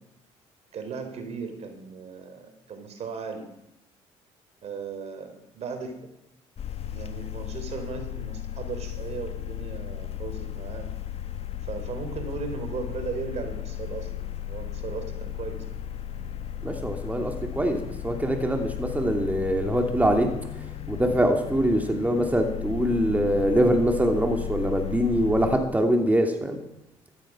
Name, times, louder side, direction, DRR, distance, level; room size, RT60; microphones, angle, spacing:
voice 1, 0.7-3.5 4.6-5.9 6.9-10.9 11.6-15.6, right 5 dB, 55° right, 7 dB, 3.8 m, -37 dB
sound 1, 6.6-25.6, left 11 dB, 50° left, 1.4 m, -35 dB
voice 2, 16.6-20.3 20.9-26.6, right 1 dB, 10° right, 3 dB, 2.7 m, -23 dB
16.5 x 13.5 x 6.2 m, 0.84 s
supercardioid pair, 80°, 13 cm